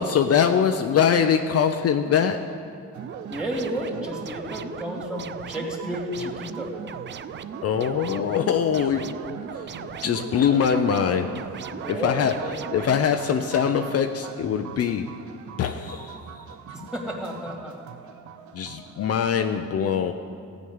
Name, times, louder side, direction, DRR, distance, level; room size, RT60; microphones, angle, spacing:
voice 1, 0.0-2.6 7.6-9.7 10.0-15.1 15.6-16.3 18.5-20.1, left 7 dB, 55° left, 6 dB, 0.6 m, -23 dB
sound 1, 2.9-19.3, right 9 dB, 70° right, 0.7 m, -43 dB
sound 2, 3.0-13.1, right 7 dB, 40° right, 0.5 m, -38 dB
voice 2, 3.3-6.7 11.8-12.7 16.7-17.8, equal, 5° right, -1 dB, 2.7 m, -32 dB
14.5 x 5.2 x 9.5 m, 2.4 s
cardioid pair, 90°, 30 cm